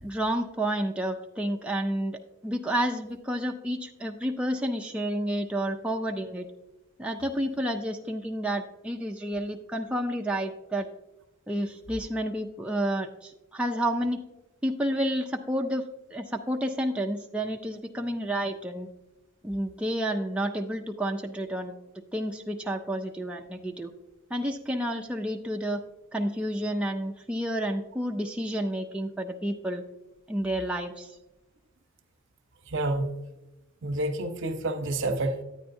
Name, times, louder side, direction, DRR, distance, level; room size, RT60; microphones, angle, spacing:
voice 1, 0.0-6.5 7.0-10.9 11.5-14.2 14.6-15.8 16.1-18.9 19.4-21.8 22.1-23.9 24.3-25.8 26.1-29.8 30.3-31.2, right 1 dB, 5° right, 1 dB, 0.3 m, -30 dB
voice 2, 32.7-33.1 33.8-35.4, right 2 dB, 60° right, 7 dB, 0.7 m, -28 dB
9.8 x 9.3 x 2.6 m, 0.97 s
head